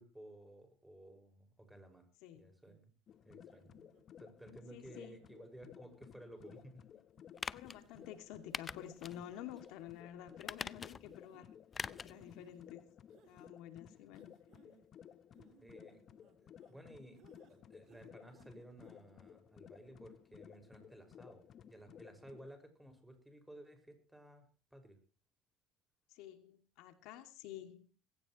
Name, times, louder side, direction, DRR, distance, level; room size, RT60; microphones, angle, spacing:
voice 1, 0.0-2.1 2.3-2.9 3.2-3.7 4.2-7.0 15.6-16.0 16.4-25.0, right 1 dB, 5° right, 6 dB, 5.7 m, -56 dB
voice 2, 2.2-2.5 4.7-5.2 7.5-11.5 11.9-12.8 13.2-14.4 26.1-27.9, left 11 dB, 70° left, 8 dB, 2.4 m, -50 dB
sound 1, 2.7-2.8 3.5-4.0 4.6-5.0 5.6-5.8 6.4-6.7 7.2-7.6 8.2-8.3 8.6-8.8 9.2-9.3 9.7-10.0 10.4-10.5 11.3-11.5 12.1-12.6 13.1-13.5 14.1-14.9 15.3-16.8 17.2-17.6 17.8-18.5 18.8-18.9, right 10 dB, 60° right, 2.3 m, -68 dB
sound 2, 3.1-22.5, left 9 dB, 45° left, 1.0 m, -58 dB
sound 3, 7.4-7.8 8.5-9.2 9.6-9.7 10.4-11.1 11.7-12.2 12.5-12.6, left 5 dB, 25° left, 0.7 m, -43 dB
20.0 x 16.5 x 3.1 m, 0.35 s
supercardioid pair, 105°, 0 cm